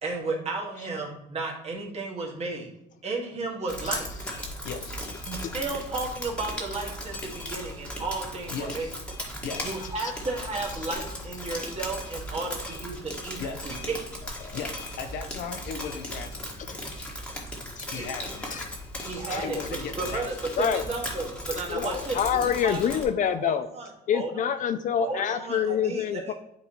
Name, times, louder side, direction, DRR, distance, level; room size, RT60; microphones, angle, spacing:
voice 1, 0.0-2.7 3.0-4.3 5.3-8.9 9.6-14.0 18.0-18.1 19.1-19.6 20.0-22.8 23.2-24.5 25.0-26.3, right 3 dB, 40° right, -1 dB, 1.8 m, -33 dB
Drip, 3.7-23.0, equal, 5° left, 1.6 m, -37 dB
voice 2, 4.6-5.0 8.5-9.0 9.4-9.8 13.4-13.8 14.5-16.9 17.9-18.7 19.4-20.3, left 6 dB, 80° left, 7 dB, 1.0 m, -37 dB
voice 3, 17.8-18.1 18.5-18.6 19.0-19.4 20.6-20.8 21.5-23.7 24.1-26.3, left 8 dB, 50° left, 10 dB, 0.4 m, -27 dB
9.6 x 3.9 x 3.0 m, 0.82 s
cardioid pair, 110°, 17 cm